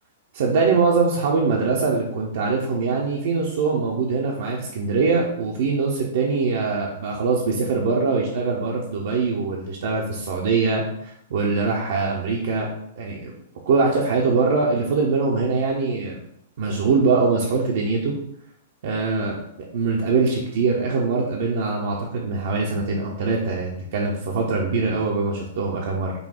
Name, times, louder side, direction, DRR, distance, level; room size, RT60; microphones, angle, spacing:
voice 1, 0.3-12.7 13.0-13.3 13.7-16.2 16.6-18.1 18.8-19.4 19.7-26.1, right 4 dB, 55° right, -2 dB, 0.7 m, -22 dB
5.4 x 2.3 x 4.3 m, 0.75 s
figure-of-eight pair, 105°, 0 cm